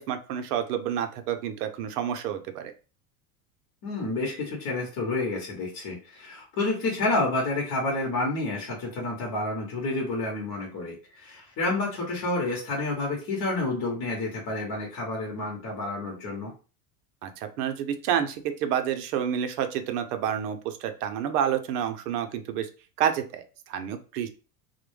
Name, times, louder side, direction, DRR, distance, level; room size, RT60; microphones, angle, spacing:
voice 1, 0.0-2.7 17.2-22.7 23.0-24.3, right 9 dB, 85° right, 8 dB, 0.6 m, -29 dB
voice 2, 3.8-16.5, left 2 dB, 40° left, -2 dB, 0.9 m, -29 dB
2.2 x 2.1 x 3.0 m, 0.35 s
supercardioid pair, 120°, 45 cm